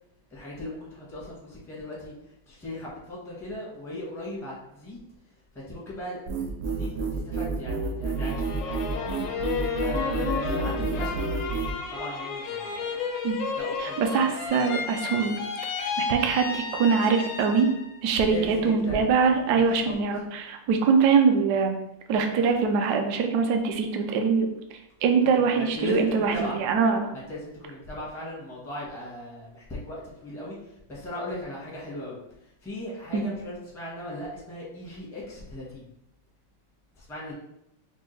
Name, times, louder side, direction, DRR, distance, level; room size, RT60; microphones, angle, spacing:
voice 1, 0.3-2.1 2.5-5.0 5.5-9.1 9.8-11.3 11.9-13.1 13.6-14.3 18.2-19.2 19.5-19.9 25.2-26.6 27.1-32.2 32.6-35.9 37.0-37.3, left 1 dB, 5° left, -6 dB, 0.4 m, -38 dB
sound 1, 6.3-11.7, right 4 dB, 90° right, 1.4 m, -29 dB
sound 2, 8.2-18.0 18.4-19.1, left 5 dB, 85° left, 1.4 m, -32 dB
voice 2, 13.8-15.4 15.8-17.7 18.0-21.8 22.1-24.5 25.0-27.1 33.1-33.2, right 5 dB, 75° right, 4 dB, 1.0 m, -23 dB
5.1 x 2.3 x 3.1 m, 0.82 s
omnidirectional pair, 2.2 m